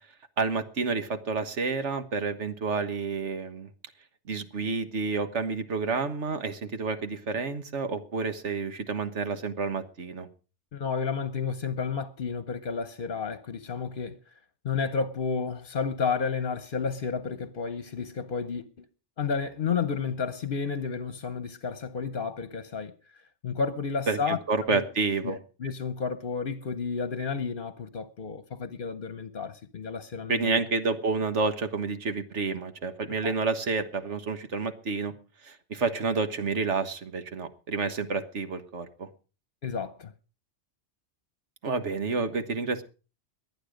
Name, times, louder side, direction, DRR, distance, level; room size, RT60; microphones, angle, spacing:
voice 1, 0.4-3.7 4.3-10.3 24.1-25.4 30.3-35.1 35.4-39.1 41.6-42.8, right 4 dB, 85° right, 1.7 m, -29 dB
voice 2, 10.7-14.2 14.6-18.9 19.2-22.9 23.4-24.4 24.7-24.8 25.2-30.6 33.2-33.3 39.6-40.1, left 5 dB, 50° left, 1.0 m, -31 dB
22.0 x 8.9 x 5.1 m
omnidirectional pair, 1.2 m